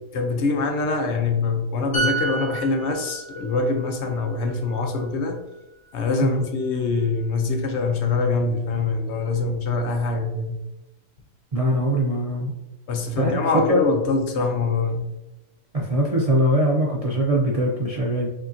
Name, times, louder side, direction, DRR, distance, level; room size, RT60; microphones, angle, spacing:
voice 1, 0.1-5.4 5.9-10.6 12.9-15.1, left 3 dB, 65° left, 0.8 m, -24 dB
sound 1, 1.9-5.5 5.9-6.1, right 3 dB, 40° left, 1.3 m, -31 dB
voice 2, 11.5-12.5 13.1-13.8 15.7-18.3, right 1 dB, 45° right, 0.4 m, -22 dB
4.8 x 2.8 x 2.6 m
omnidirectional pair, 1.3 m